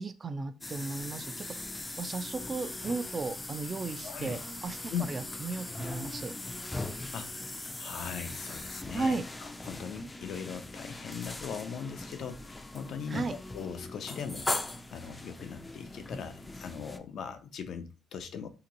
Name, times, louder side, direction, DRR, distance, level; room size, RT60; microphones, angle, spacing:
voice 1, 0.0-1.6 2.0-4.8 5.1-6.3 8.9-9.3 13.1-13.4, right 3 dB, 35° right, 10 dB, 0.5 m, -35 dB
sound 1, 0.6-17.0, left 2 dB, 15° left, 0.4 m, -40 dB
voice 2, 4.0-4.4 4.9-5.1 7.1-7.3 7.8-13.3 13.5-14.5 14.9-18.5, left 7 dB, 70° left, 8 dB, 0.5 m, -39 dB
2.9 x 2.6 x 3.9 m, 0.33 s
cardioid pair, 90°, 0 cm